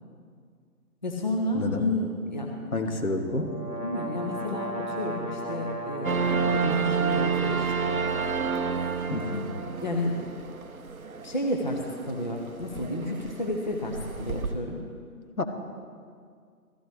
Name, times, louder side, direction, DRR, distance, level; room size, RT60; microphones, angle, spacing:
voice 1, 1.0-3.1 3.8-8.0 9.8-10.2 11.2-14.9, left 1 dB, 30° left, 0 dB, 0.9 m, -31 dB
voice 2, 2.7-3.6 9.1-9.5 15.4-15.5, left 2 dB, 65° left, 6 dB, 1.4 m, -29 dB
sound 1, 3.0-6.9, right 1 dB, 85° left, 2.1 m, -35 dB
sound 2, 6.0-14.5, right 5 dB, 65° right, 0.8 m, -30 dB
15.0 x 14.5 x 3.4 m, 2.1 s
figure-of-eight pair, 155°, 46 cm